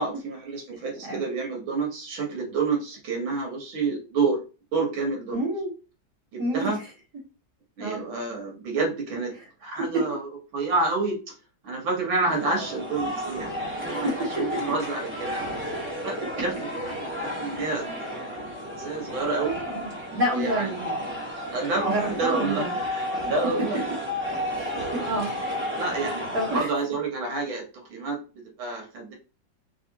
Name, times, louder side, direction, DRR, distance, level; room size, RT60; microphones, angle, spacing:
voice 1, 0.0-4.4 4.7-5.4 6.3-6.8 7.8-9.3 9.6-11.3 11.6-15.5 16.0-18.3 18.8-19.6 20.3-20.7 21.5-23.9 24.7-24.8 25.8-26.2 26.5-27.6 27.9-29.1, right 3 dB, 90° right, 1 dB, 2.0 m, -29 dB
voice 2, 5.3-5.7 6.4-6.7 7.8-8.0 13.9-14.1 19.7-21.0 21.9-22.8 23.1-23.2 24.9-25.7 26.3-26.7, right 1 dB, 55° right, -5 dB, 2.0 m, -29 dB
sound 1, 12.3-26.6, equal, 10° right, 0.9 m, -32 dB
4.1 x 2.6 x 2.8 m, 0.33 s
omnidirectional pair, 2.1 m